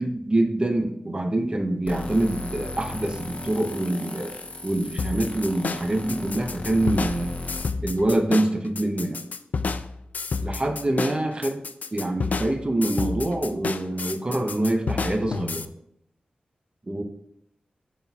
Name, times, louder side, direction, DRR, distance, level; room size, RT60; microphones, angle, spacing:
voice 1, 0.0-4.4 4.6-7.4 7.8-9.2 10.4-11.6 11.9-15.7 16.9-17.0, right 1 dB, 35° right, 4 dB, 0.7 m, -25 dB
sound 1, 1.9-7.6, left 2 dB, 50° left, 0.8 m, -36 dB
sound 2, 5.0-15.7, left 4 dB, 65° left, 0.3 m, -30 dB
11.0 x 4.1 x 2.4 m, 0.75 s
wide cardioid pair, 70°, 3 cm